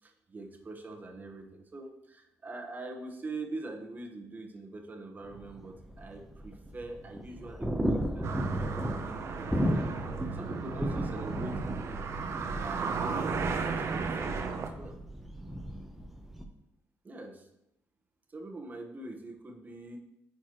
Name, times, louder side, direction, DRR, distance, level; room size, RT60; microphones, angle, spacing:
voice 1, 0.0-7.8 8.1-8.3 9.0-12.1 12.6-15.0 17.0-17.5 18.3-20.0, right 2 dB, 30° right, 3 dB, 1.1 m, -43 dB
sound 1, 5.2-16.4, equal, 5° right, 0.8 m, -35 dB
sound 2, 8.2-14.7, right 5 dB, 55° right, 0.7 m, -35 dB
10.0 x 4.6 x 3.0 m, 0.84 s
cardioid pair, 95°, 6 cm